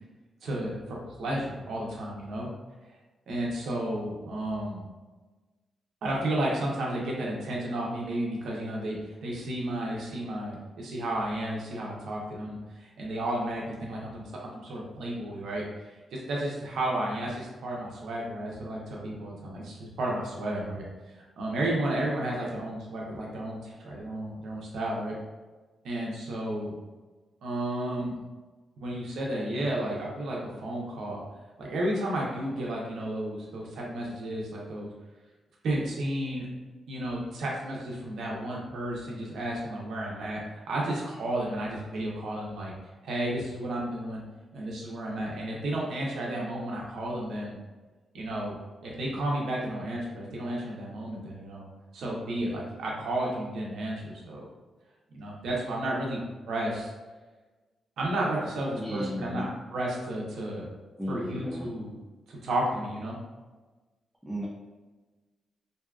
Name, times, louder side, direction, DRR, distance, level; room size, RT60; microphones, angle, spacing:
voice 1, 0.4-2.5 3.3-4.8 6.0-20.8 21.2-25.2 25.8-26.7 27.4-28.2 28.8-31.2 31.6-34.9 35.6-36.5 36.9-42.7 43.0-44.2 44.5-47.6 48.1-48.5 48.8-51.7 51.9-54.5 55.1-56.2 56.5-56.9 58.0-60.6 61.1-62.0 62.3-63.2, right 1 dB, 80° right, -3 dB, 0.6 m, -32 dB
voice 2, 58.8-59.5 61.0-61.7 64.2-64.5, equal, 5° right, -6 dB, 0.4 m, -34 dB
2.6 x 2.3 x 2.3 m, 1.2 s
cardioid pair, 115°, 0 cm